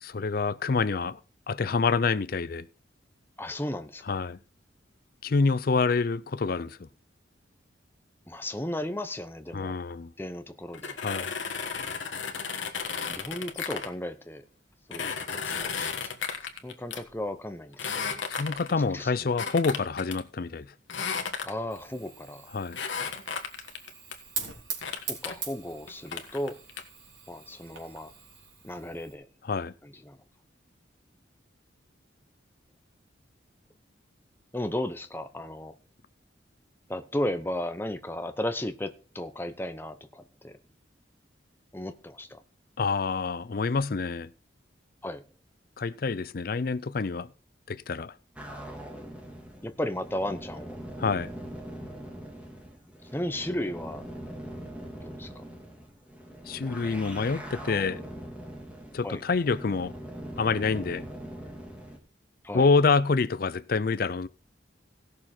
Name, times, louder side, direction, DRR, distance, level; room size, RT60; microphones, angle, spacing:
voice 1, 0.0-1.2 1.5-2.7 4.0-4.4 5.2-6.9 9.5-10.1 11.0-11.3 18.3-20.7 22.5-22.8 29.4-29.7 42.8-44.3 45.8-47.3 47.7-48.1 51.0-51.3 56.4-58.0 58.9-59.9 60.4-61.0 62.5-64.3, left 4 dB, 50° left, 0.5 m, -27 dB
voice 2, 3.4-4.2 8.3-9.7 10.2-10.9 13.1-14.4 14.9-16.1 16.6-18.2 18.7-19.1 21.4-22.5 25.1-26.6 27.3-28.1 28.6-29.3 30.1-30.2 34.5-35.7 36.9-40.5 41.7-42.4 45.0-45.2 49.6-50.7 53.1-54.1 55.0-55.4 59.0-59.2 62.4-62.7, left 1 dB, 10° left, 0.8 m, -35 dB
sound 1, 10.7-13.9 14.9-17.0 17.7-18.8 19.4-20.2 20.9-21.8 22.7-24.1 24.8-25.3 25.9-26.8, left 6 dB, 80° left, 1.4 m, -34 dB
Fire, 21.7-29.1, right 6 dB, 85° right, 3.4 m, -42 dB
sound 2, 48.4-62.0, right 1 dB, 5° right, 1.9 m, -42 dB
16.5 x 6.7 x 4.3 m
head